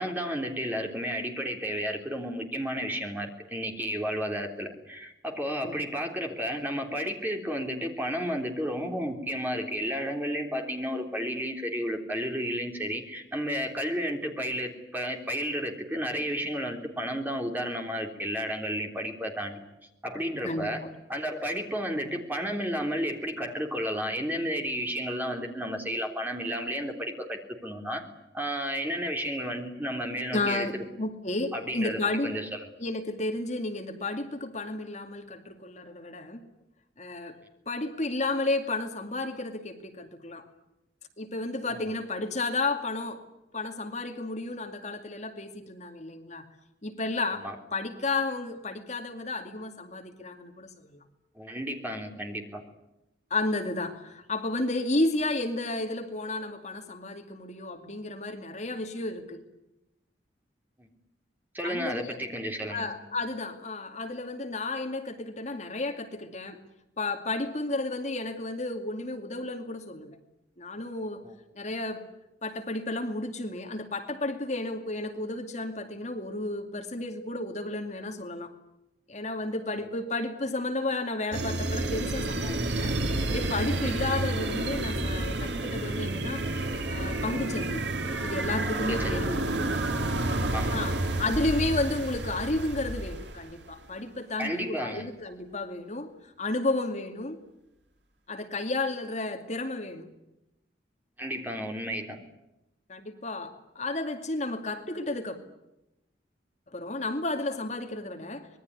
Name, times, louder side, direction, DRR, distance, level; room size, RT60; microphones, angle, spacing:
voice 1, 0.0-19.6 20.0-20.8 21.1-28.1 28.3-30.8 31.5-32.6 41.7-41.9 47.4-47.5 51.4-52.6 60.8-60.9 61.5-62.9 71.2-71.3 83.8-84.0 88.9-89.2 90.5-90.8 94.4-95.0 101.2-102.2, equal, 10° right, 3 dB, 3.6 m, -32 dB
voice 2, 20.4-20.9 30.3-30.7 31.0-32.3 32.8-36.4 37.0-37.3 37.7-40.4 41.2-43.2 43.5-46.4 46.8-51.0 53.3-59.4 61.6-62.2 62.7-66.6 67.0-70.2 70.6-71.2 71.6-72.0 72.4-78.5 79.1-86.5 86.9-87.8 88.2-89.4 90.7-90.9 91.2-96.1 96.4-97.4 98.3-100.1 102.9-105.4 106.7-108.5, left 2 dB, 40° left, 5 dB, 2.4 m, -32 dB
sound 1, 81.3-93.6, right 2 dB, 80° right, 2.4 m, -30 dB
25.5 x 21.0 x 9.7 m, 0.91 s
head